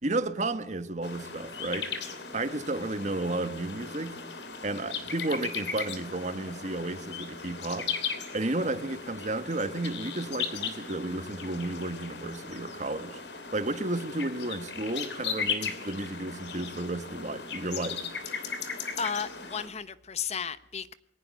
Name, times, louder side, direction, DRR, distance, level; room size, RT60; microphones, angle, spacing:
voice 1, 0.0-1.9 2.3-4.2 4.6-7.9 8.3-13.2 13.5-18.0, right 2 dB, 40° right, 1.4 m, -32 dB
sound 1, 1.0-19.7, left 6 dB, 75° left, 3.1 m, -37 dB
voice 2, 19.0-20.9, left 6 dB, 40° left, 0.9 m, -34 dB
22.0 x 19.0 x 6.5 m
head